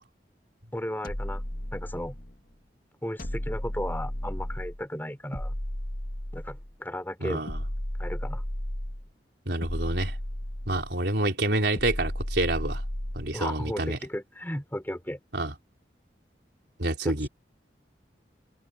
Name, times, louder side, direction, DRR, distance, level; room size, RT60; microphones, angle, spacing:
voice 1, 0.7-1.4 1.7-2.2 3.0-5.5 6.3-7.4 8.0-8.4 10.7-10.8 13.3-15.2 17.0-17.3, left 1 dB, 10° left, 4.1 m, -35 dB
sound 1, 1.0-2.4 3.2-4.8 5.3-6.7 7.5-9.1 9.6-11.0 11.8-13.4, equal, 55° left, 2.3 m, -33 dB
voice 2, 7.2-7.6 9.5-10.1 10.7-12.8 13.1-14.0 15.3-15.5 16.8-17.3, right 2 dB, 70° right, 3.8 m, -28 dB
head